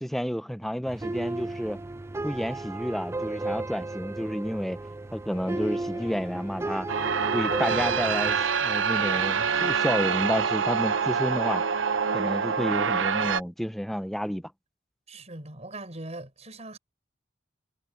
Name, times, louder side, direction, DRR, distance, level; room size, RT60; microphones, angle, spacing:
voice 1, 0.0-1.8 2.2-4.8 5.1-6.9 7.3-11.6 12.1-14.4, equal, ahead, 0.8 m, -30 dB
sound 1, 0.9-8.4, right 2 dB, 15° right, 0.3 m, -34 dB
sound 2, 5.3-12.0, left 1 dB, 30° left, 1.9 m, -47 dB
sound 3, 6.9-13.4, right 6 dB, 85° right, 0.8 m, -26 dB
voice 2, 15.1-16.8, right 2 dB, 35° right, 5.8 m, -40 dB
head